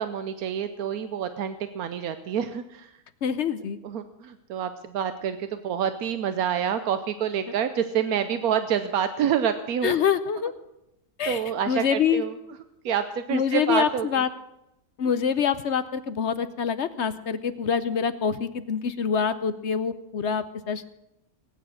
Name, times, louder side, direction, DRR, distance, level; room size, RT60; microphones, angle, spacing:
voice 1, 0.0-2.9 3.8-10.0 11.3-12.3 12.8-14.2, right 8 dB, 85° right, 10 dB, 1.2 m, -27 dB
voice 2, 3.2-3.8 9.8-10.5 11.2-12.2 13.3-14.3 15.0-20.8, left 7 dB, 60° left, 13 dB, 0.9 m, -25 dB
19.0 x 9.5 x 6.4 m, 0.85 s
omnidirectional pair, 1.5 m